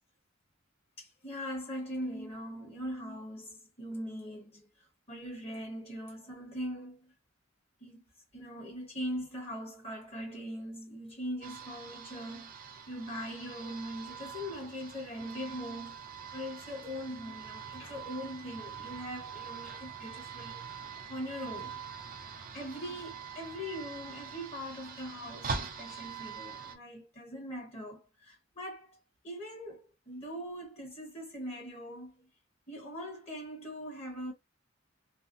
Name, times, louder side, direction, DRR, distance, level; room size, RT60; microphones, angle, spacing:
voice 1, 1.0-7.1 7.8-8.0 8.3-12.5 12.9-16.0 16.3-21.8 22.5-29.0 29.2-32.3 32.7-34.3, equal, 30° left, 1.3 m, -41 dB
sound 1, 11.4-26.7, right 6 dB, 45° right, 0.5 m, -44 dB
3.3 x 2.1 x 2.5 m
head